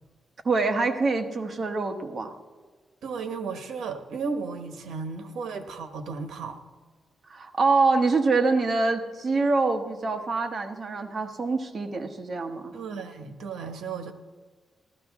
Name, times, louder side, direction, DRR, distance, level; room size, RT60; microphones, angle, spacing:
voice 1, 0.4-2.3 7.3-12.7, right 3 dB, 35° right, 5 dB, 1.1 m, -25 dB
voice 2, 3.0-6.6 12.7-14.1, right 5 dB, 80° right, 7 dB, 1.2 m, -34 dB
14.5 x 12.5 x 3.6 m, 1.4 s
wide cardioid pair, 145°, 0 cm